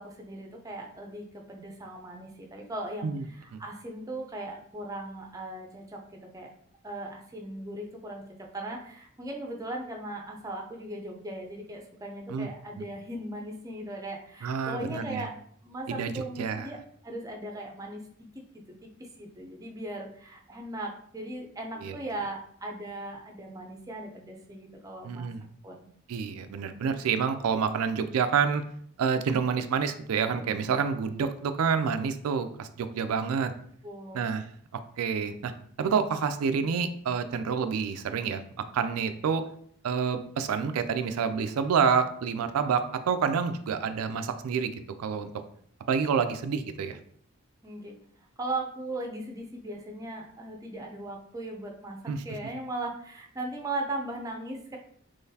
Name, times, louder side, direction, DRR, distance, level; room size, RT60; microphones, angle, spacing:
voice 1, 0.0-6.0 6.3-6.5 6.8-15.3 15.6-18.0 18.5-18.9 19.2-25.3 25.6-25.9 30.4-30.5 33.8-34.2 47.6-48.0 48.4-52.0 52.2-54.8, right 1 dB, 15° right, 1 dB, 0.5 m, -38 dB
voice 2, 14.4-15.3 15.9-16.7 21.8-22.0 25.0-25.4 26.1-28.6 29.0-33.5 34.1-34.4 35.0-35.5 35.8-38.4 38.7-39.4 39.8-45.3 45.9-47.0 52.1-52.2, right 6 dB, 85° right, 9 dB, 0.4 m, -28 dB
3.8 x 3.1 x 2.7 m, 0.62 s
head